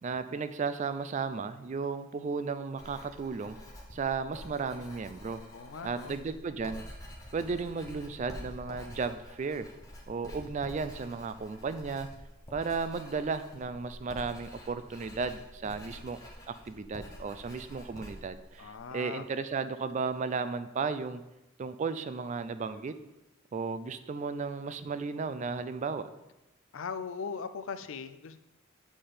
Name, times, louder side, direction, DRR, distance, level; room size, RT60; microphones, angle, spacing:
voice 1, 0.0-3.6 3.9-5.4 5.8-6.8 7.3-9.7 10.1-12.1 12.5-16.2 16.7-21.2 21.6-22.9 23.5-26.1, right 4 dB, 35° right, 11 dB, 0.3 m, -34 dB
Writing, 2.8-18.9, equal, 15° left, 1.2 m, -48 dB
voice 2, 5.5-6.2 18.6-19.3 26.7-28.4, left 5 dB, 65° left, 11 dB, 0.4 m, -39 dB
7.5 x 4.4 x 4.9 m, 0.99 s
head